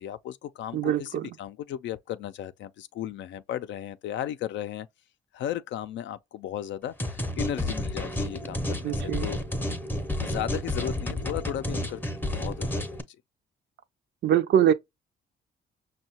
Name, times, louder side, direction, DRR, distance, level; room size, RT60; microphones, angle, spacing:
voice 1, 0.0-4.9 5.3-9.4 10.2-13.2, left 11 dB, 70° left, 0.4 m, -35 dB
voice 2, 0.7-1.3 8.8-9.3 14.2-14.7, right 10 dB, 65° right, 0.5 m, -23 dB
sound 1, 7.0-13.0, left 1 dB, 10° left, 0.6 m, -31 dB
5.4 x 2.2 x 2.8 m
cardioid pair, 90°, 20 cm